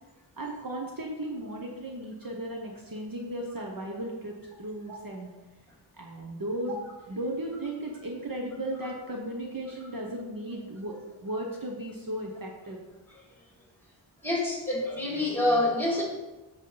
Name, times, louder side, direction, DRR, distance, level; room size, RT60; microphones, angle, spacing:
voice 1, 0.4-5.3 6.0-6.8 7.1-11.0 11.2-12.8, right 1 dB, 45° right, 0 dB, 1.1 m, -35 dB
voice 2, 14.2-16.0, left 1 dB, 5° left, -3 dB, 2.5 m, -27 dB
8.0 x 7.1 x 4.0 m, 1.1 s
wide cardioid pair, 110°, 48 cm